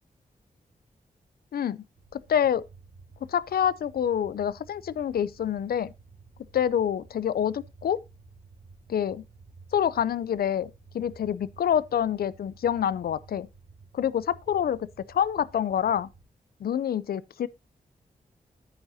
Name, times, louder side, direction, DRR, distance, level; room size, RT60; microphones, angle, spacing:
voice 1, 1.5-1.8 2.1-2.6 3.3-5.9 6.5-8.0 8.9-9.2 9.7-13.5 13.9-16.1 16.6-17.5, left 9 dB, 90° left, 0.4 m, -27 dB
sound 1, 1.9-16.2, right 4 dB, 80° right, 1.7 m, -53 dB
9.9 x 8.7 x 2.7 m
wide cardioid pair, 95°, 15 cm